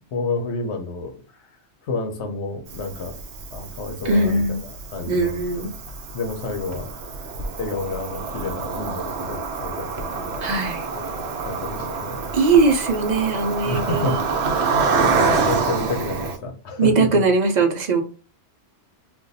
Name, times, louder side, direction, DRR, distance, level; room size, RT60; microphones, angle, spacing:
voice 1, 0.1-1.2 1.8-3.2 3.5-4.6 4.9-5.7 6.1-6.9 7.6-10.5 10.9-12.3 13.6-14.2 14.7-17.2, left 3 dB, 75° left, 4 dB, 1.0 m, -30 dB
Cricket, 2.7-16.4, right 4 dB, 75° right, 0.9 m, -27 dB
voice 2, 4.0-4.6 5.1-5.7 10.4-10.8 12.3-14.2 16.8-18.0, right 3 dB, 50° right, 4 dB, 0.6 m, -20 dB
2.5 x 2.3 x 3.9 m, 0.39 s
omnidirectional pair, 1.2 m